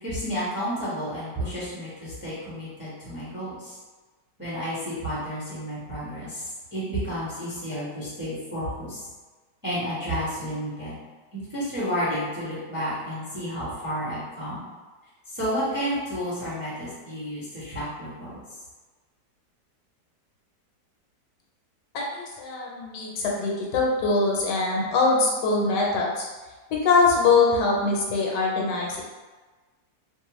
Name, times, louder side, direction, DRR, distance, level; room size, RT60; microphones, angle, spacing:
voice 1, 0.0-3.8 4.4-9.0 9.6-10.9 11.5-14.6 15.3-18.4, equal, 10° right, -11 dB, 0.8 m, -31 dB
voice 2, 21.9-26.3 26.7-29.0, left 3 dB, 75° left, -2 dB, 1.2 m, -23 dB
2.9 x 2.1 x 2.9 m, 1.3 s
omnidirectional pair, 1.9 m